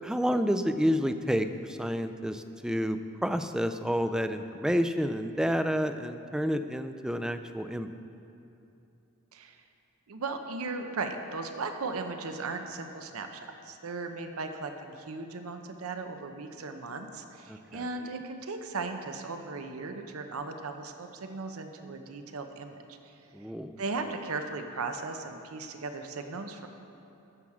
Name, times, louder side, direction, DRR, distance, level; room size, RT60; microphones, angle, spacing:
voice 1, 0.0-7.9 17.5-17.6 23.3-23.8, equal, 5° right, 9 dB, 0.3 m, -29 dB
voice 2, 9.3-9.6 10.1-23.0 23.8-26.7, right 3 dB, 90° right, 6 dB, 0.7 m, -37 dB
13.5 x 7.2 x 4.8 m, 2.9 s
head